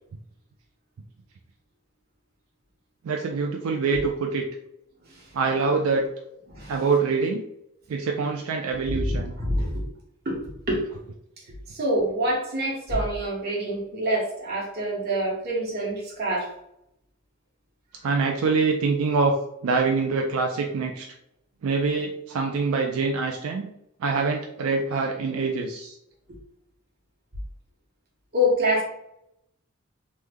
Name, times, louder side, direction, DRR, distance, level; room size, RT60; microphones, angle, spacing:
voice 1, 3.0-4.4 5.3-6.1 6.7-7.4 7.9-9.3 18.0-19.3 19.6-21.1 21.6-23.7 24.0-26.0, right 4 dB, 80° right, 2 dB, 0.4 m, -25 dB
voice 2, 6.5-6.8 8.9-9.8 10.2-10.4 10.7-10.8 11.7-16.5 28.3-28.8, equal, 45° right, -3 dB, 1.1 m, -26 dB
3.1 x 2.1 x 3.5 m, 0.79 s
head